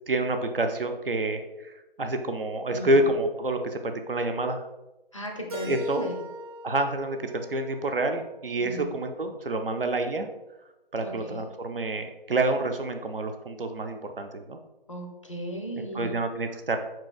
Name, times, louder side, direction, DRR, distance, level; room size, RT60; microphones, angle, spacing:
voice 1, 0.1-4.6 5.6-6.1 6.6-10.3 10.9-14.6 15.8-16.8, right 2 dB, 60° right, 6 dB, 0.6 m, -28 dB
voice 2, 2.7-3.1 5.1-6.2 8.6-9.0 11.0-11.4 14.9-16.1, equal, 30° left, 1 dB, 0.5 m, -36 dB
Keyboard (musical), 5.5-8.4, left 1 dB, 40° right, 1.1 m, -40 dB
5.0 x 4.5 x 2.3 m, 0.99 s
figure-of-eight pair, 150°, 31 cm